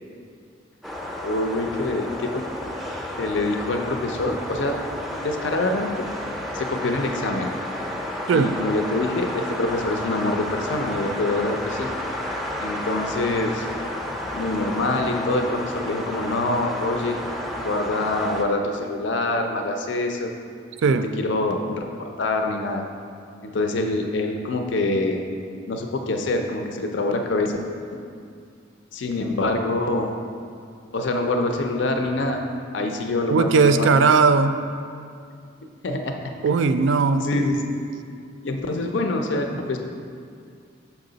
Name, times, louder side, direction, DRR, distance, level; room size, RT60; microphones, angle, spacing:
sound 1, 0.8-18.4, left 1 dB, ahead, 0.5 m, -31 dB
voice 1, 1.2-2.4 3.2-4.8 5.2-6.1 6.5-7.5 8.3-11.9 12.6-13.7 14.3-17.2 17.6-20.3 20.8-22.8 23.4-25.2 25.7-27.5 28.9-30.2 30.9-32.4 32.7-33.9 35.8-36.1 37.2-37.8 38.4-39.8, left 2 dB, 65° left, 4 dB, 0.5 m, -25 dB
voice 2, 33.3-34.6 36.4-37.3, right 5 dB, 70° right, 10 dB, 0.3 m, -18 dB
6.1 x 5.7 x 3.9 m, 2.3 s
head